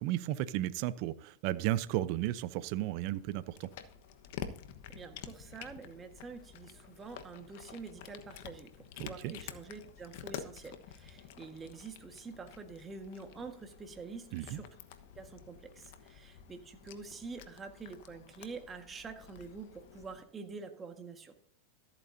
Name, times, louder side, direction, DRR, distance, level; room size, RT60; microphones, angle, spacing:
voice 1, 0.0-3.7 9.0-9.3 14.3-14.6, right 14 dB, 55° right, 0.6 m, -34 dB
Cat, 3.1-20.2, left 9 dB, 65° left, 1.2 m, -49 dB
voice 2, 4.9-14.7 15.2-21.3, right 4 dB, 20° right, 1.6 m, -47 dB
14.0 x 8.5 x 2.7 m
supercardioid pair, 130°, 0 cm